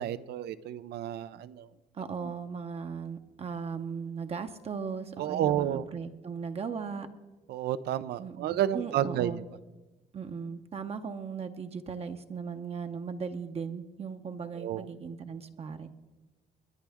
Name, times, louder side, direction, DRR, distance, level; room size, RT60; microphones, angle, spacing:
voice 1, 0.0-1.7 2.2-2.3 5.2-5.9 7.5-9.4 14.6-14.9, right 11 dB, 80° right, 15 dB, 0.6 m, -31 dB
voice 2, 1.9-7.1 8.2-9.5 10.1-15.9, right 6 dB, 40° right, 7 dB, 0.7 m, -37 dB
22.0 x 10.0 x 3.5 m, 1.2 s
cardioid pair, 110°, 16 cm